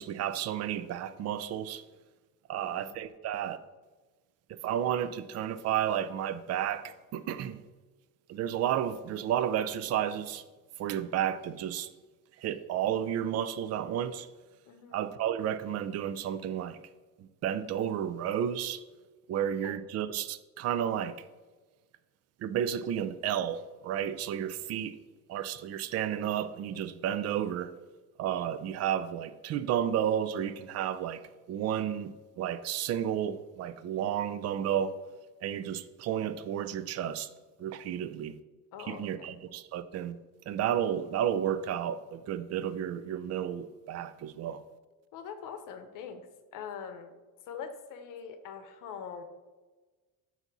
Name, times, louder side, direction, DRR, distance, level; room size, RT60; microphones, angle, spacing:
voice 1, 0.0-1.8 2.5-3.6 4.6-7.6 8.3-10.4 10.8-11.9 12.4-14.3 14.9-16.8 17.2-18.8 19.3-21.2 22.4-25.0 25.3-27.7 28.2-31.2 31.5-32.1 32.4-34.9 35.4-37.3 37.6-38.3 38.8-40.2 40.5-44.6, right 10 dB, 45° right, 0.4 m, -32 dB
voice 2, 2.5-3.0 14.7-15.0 19.3-19.8 38.7-39.4 45.1-46.3 46.5-47.1 47.5-49.2, left 7 dB, 65° left, 0.8 m, -43 dB
8.0 x 2.8 x 6.0 m
cardioid pair, 150°, 35 cm